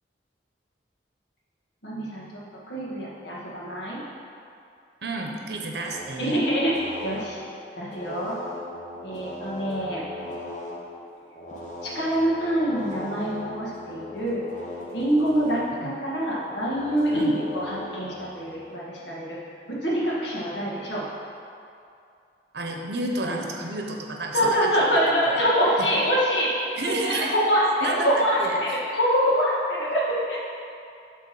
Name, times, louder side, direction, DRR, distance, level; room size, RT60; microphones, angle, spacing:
voice 1, 1.8-2.3 2.7-4.0 6.2-7.4 7.8-8.4 9.0-10.0 11.9-14.5 14.9-19.4 19.8-21.0 24.3-26.5 26.9-28.4 28.7-30.4, equal, 80° left, -6 dB, 1.8 m, -25 dB
voice 2, 5.0-6.4 15.8-15.9 17.1-17.3 22.5-24.7 25.3-25.4 26.8-27.3 27.8-28.6, right 2 dB, 65° right, 1 dB, 0.8 m, -30 dB
sound 1, 5.9-10.8 11.2-18.8, left 1 dB, 40° left, 1.0 m, -39 dB
8.4 x 3.7 x 6.9 m, 2.5 s
head